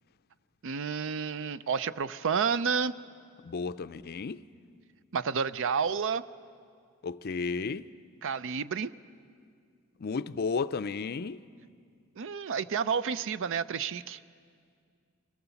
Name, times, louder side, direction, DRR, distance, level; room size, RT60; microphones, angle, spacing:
voice 1, 0.6-2.9 5.1-6.2 8.2-8.9 12.2-14.2, right 6 dB, 65° right, 0.5 m, -30 dB
voice 2, 3.4-4.4 7.0-7.9 10.0-11.4, left 4 dB, 50° left, 0.4 m, -33 dB
24.5 x 17.5 x 7.0 m
head